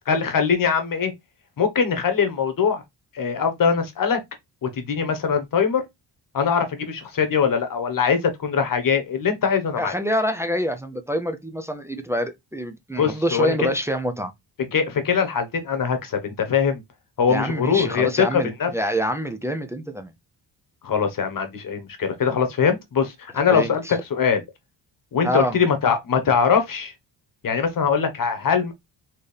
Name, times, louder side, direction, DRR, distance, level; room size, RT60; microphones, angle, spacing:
voice 1, 0.1-1.1 1.6-2.8 3.1-4.2 4.6-5.8 6.3-9.9 13.0-13.5 14.7-16.8 17.2-18.7 20.8-23.8 24.1-24.4 25.1-26.9 27.4-28.7, left 6 dB, 45° left, 1.2 m, -22 dB
voice 2, 9.8-14.3 17.3-20.1 23.5-24.0 25.2-25.6, equal, 5° right, 0.5 m, -26 dB
4.4 x 3.1 x 3.3 m
wide cardioid pair, 145°, 44 cm